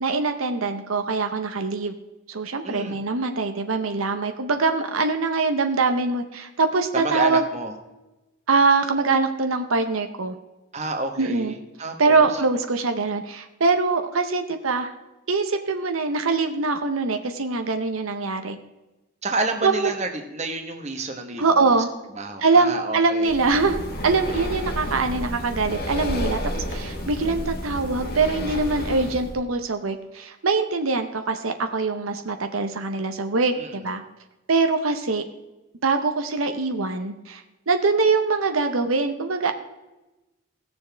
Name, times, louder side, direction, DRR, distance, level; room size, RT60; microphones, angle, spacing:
voice 1, 0.0-2.0 2.3-7.5 8.5-10.3 11.2-11.5 12.0-14.9 15.3-18.6 19.6-19.9 21.4-21.9 22.4-34.0 34.5-35.2 35.8-39.5, right 3 dB, 80° right, 7 dB, 0.9 m, -23 dB
voice 2, 2.6-3.0 6.9-7.7 10.7-12.4 19.2-21.7 22.1-23.4 33.6-33.9, right 2 dB, 30° right, 4 dB, 1.1 m, -30 dB
Breathing, 23.2-29.4, left 1 dB, 45° left, 1.4 m, -31 dB
17.5 x 7.0 x 3.4 m, 1.0 s
head